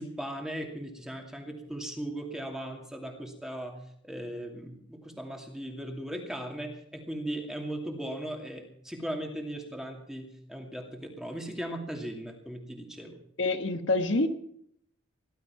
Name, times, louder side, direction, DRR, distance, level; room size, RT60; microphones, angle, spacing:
voice 1, 0.0-3.8 4.0-13.2, right 1 dB, 5° right, 2 dB, 2.5 m, -38 dB
voice 2, 13.4-14.3, left 2 dB, 65° left, 7 dB, 1.3 m, -26 dB
18.5 x 12.0 x 5.8 m, 0.69 s
head